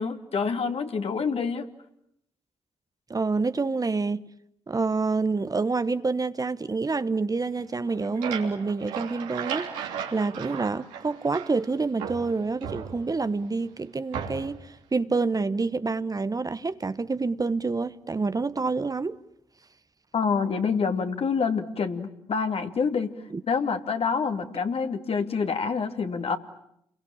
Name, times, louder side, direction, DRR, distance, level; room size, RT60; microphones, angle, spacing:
voice 1, 0.0-1.7 20.1-23.1 23.5-26.4, left 5 dB, 55° left, 2.6 m, -27 dB
voice 2, 3.1-4.3 4.7-9.7 10.1-19.2 23.3-23.4, right 4 dB, 30° right, 1.1 m, -27 dB
sound 1, 7.7-11.7 12.0-13.3 14.1-14.7, right 7 dB, 85° right, 3.1 m, -36 dB
30.0 x 22.5 x 8.7 m
hypercardioid pair, 45°, 12 cm